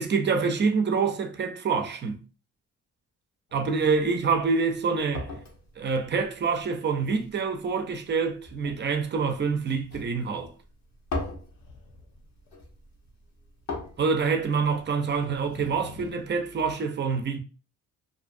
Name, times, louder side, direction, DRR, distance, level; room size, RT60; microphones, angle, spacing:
voice 1, 0.0-2.2 3.5-5.3 5.8-10.5 14.0-17.4, right 5 dB, 35° right, 0.5 m, -26 dB
sound 1, 3.5-16.4, left 2 dB, 65° left, 1.0 m, -42 dB
sound 2, 11.2-12.5 14.7-16.7, left 4 dB, 90° left, 0.6 m, -47 dB
2.6 x 2.3 x 2.6 m
cardioid pair, 90°, 30 cm